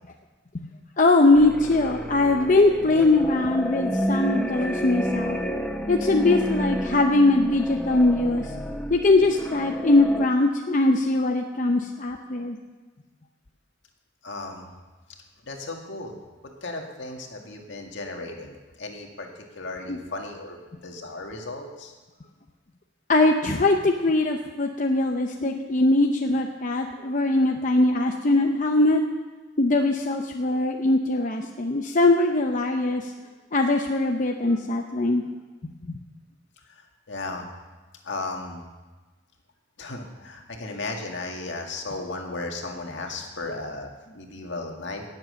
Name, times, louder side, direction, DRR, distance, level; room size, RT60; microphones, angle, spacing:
voice 1, 1.0-5.4 5.9-8.6 8.9-12.6 19.9-20.0 23.1-29.0 29.6-33.1 33.5-35.2, left 2 dB, 40° left, 3 dB, 0.7 m, -21 dB
sound 1, 1.3-10.3, equal, 5° left, 0.7 m, -30 dB
voice 2, 14.2-14.7 15.4-21.9 25.4-25.6 26.2-26.4 27.9-28.0 28.3-28.4 36.7-37.5 38.0-38.6 39.8-45.0, left 2 dB, 70° left, 2 dB, 1.9 m, -35 dB
18.0 x 7.6 x 6.5 m, 1.3 s
head